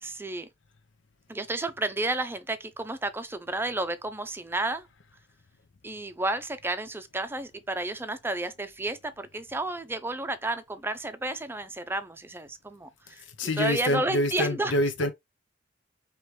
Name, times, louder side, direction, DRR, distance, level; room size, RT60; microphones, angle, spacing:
voice 1, 0.0-0.5 1.3-4.9 5.8-13.2 13.6-14.8, right 2 dB, 10° right, 0.5 m, -31 dB
voice 2, 13.4-15.1, left 1 dB, 75° left, 0.6 m, -26 dB
4.9 x 3.1 x 3.0 m
head